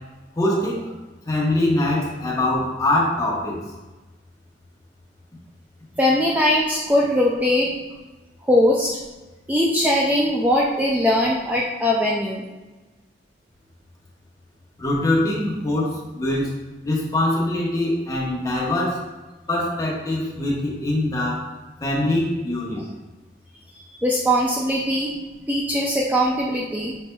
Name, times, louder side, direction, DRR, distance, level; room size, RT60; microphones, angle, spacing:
voice 1, 0.4-0.8 1.3-3.6 14.8-16.5 16.8-19.0 19.5-21.5 21.8-22.8, left 1 dB, 20° left, -4 dB, 0.9 m, -23 dB
voice 2, 6.0-7.7 8.4-9.0 9.5-12.4 22.8-22.9 24.0-25.1 25.5-26.9, left 1 dB, 10° right, -3 dB, 0.3 m, -20 dB
5.6 x 4.1 x 2.2 m, 1.2 s
head